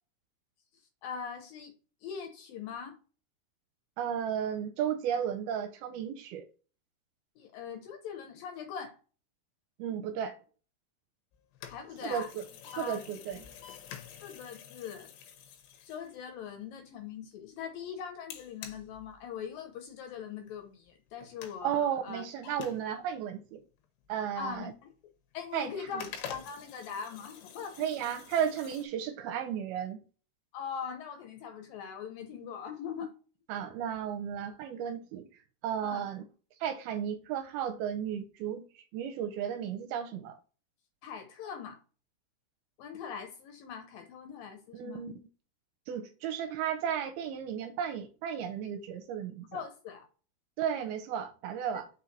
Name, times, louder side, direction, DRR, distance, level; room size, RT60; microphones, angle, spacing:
voice 1, 1.0-1.7 2.0-3.0 7.4-9.0 11.7-12.3 12.7-13.0 14.2-15.1 15.9-22.3 24.3-24.9 25.3-27.9 30.5-33.1 33.5-33.7 35.8-36.1 41.0-41.8 42.8-45.0 49.5-50.1 51.7-51.8, left 7 dB, 70° left, 2.3 m, -41 dB
voice 2, 4.0-6.5 9.8-10.4 12.0-12.4 12.8-13.4 21.6-23.6 24.1-24.7 25.5-26.0 27.8-30.0 33.5-35.3 35.6-36.2 36.6-40.4 44.7-45.1 45.9-49.6 50.6-51.9, right 9 dB, 75° right, 2.4 m, -34 dB
sound 1, 11.3-16.7 18.3-19.7 20.0-20.1 20.5-20.6 20.9-21.6 22.4-23.4 23.8-25.0 25.4-25.5 25.8-28.9, left 8 dB, 90° left, 3.2 m, -48 dB
6.2 x 4.5 x 4.0 m
omnidirectional pair, 4.8 m